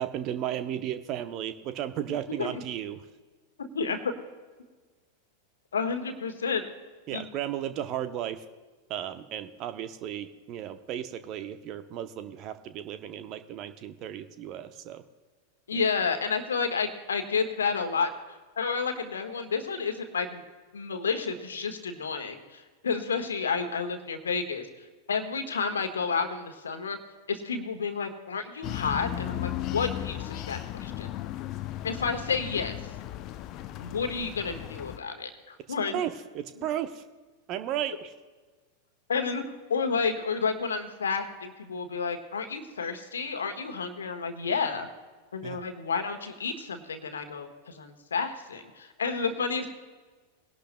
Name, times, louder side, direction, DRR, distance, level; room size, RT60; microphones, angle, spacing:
voice 1, 0.0-3.0 7.1-8.4 8.9-15.0 15.7-15.8 35.9-37.0 37.5-38.1 45.4-45.6, right 11 dB, 40° right, 10 dB, 0.8 m, -34 dB
voice 2, 3.6-4.1 5.7-6.7 7.1-7.3 15.7-18.1 18.6-20.4 20.7-24.7 25.1-27.0 27.3-31.1 31.8-32.8 33.8-36.0 39.1-39.4 39.7-44.9 45.3-49.7, left 5 dB, 70° left, 7 dB, 1.4 m, -30 dB
sound 1, 28.6-35.0, left 13 dB, 40° left, 0.6 m, -36 dB
22.0 x 11.5 x 2.2 m, 1.3 s
figure-of-eight pair, 90°, 0 cm